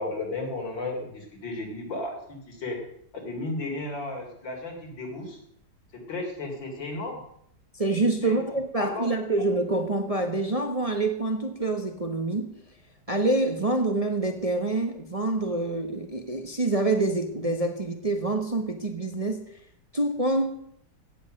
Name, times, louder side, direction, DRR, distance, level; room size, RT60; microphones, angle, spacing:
voice 1, 0.0-2.8 3.1-5.4 6.1-7.2 8.2-9.1, left 2 dB, 85° left, 1 dB, 3.9 m, -34 dB
voice 2, 7.7-12.5 13.1-19.4 19.9-20.5, right 2 dB, 25° right, 5 dB, 0.9 m, -26 dB
16.0 x 8.0 x 6.5 m, 0.69 s
omnidirectional pair, 2.0 m